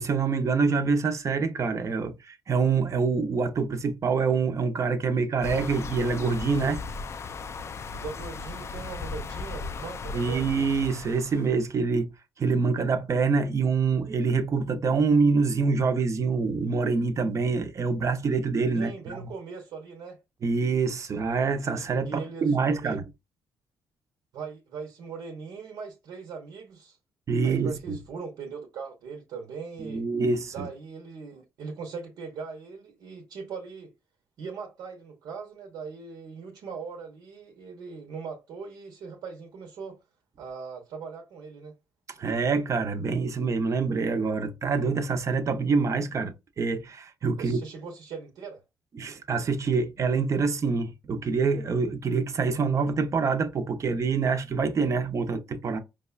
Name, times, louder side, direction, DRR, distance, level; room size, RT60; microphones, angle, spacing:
voice 1, 0.0-6.8 10.1-12.1 12.4-19.3 20.4-23.0 27.3-28.0 29.8-30.7 42.2-47.6 49.0-55.8, right 4 dB, 45° right, 0.6 m, -26 dB
sound 1, 5.4-11.6, left 4 dB, 40° left, 0.3 m, -37 dB
voice 2, 8.0-10.5 18.7-20.2 22.0-23.0 24.3-27.0 27.4-30.1 30.5-33.9 34.4-40.0 40.4-41.7 47.4-48.6, right 5 dB, 75° right, 0.8 m, -40 dB
4.8 x 2.2 x 2.3 m
supercardioid pair, 70°, 7 cm